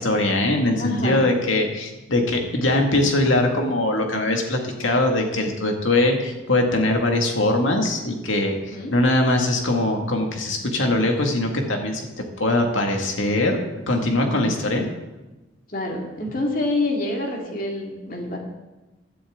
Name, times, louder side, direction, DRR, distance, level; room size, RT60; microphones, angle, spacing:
voice 1, 0.0-12.1 12.4-13.6 13.9-14.8, left 1 dB, 75° left, 2 dB, 2.1 m, -21 dB
voice 2, 0.8-1.2 8.7-8.9 14.1-14.4 15.7-18.4, left 2 dB, 45° left, 0 dB, 2.3 m, -27 dB
16.0 x 11.5 x 3.8 m, 1.1 s
head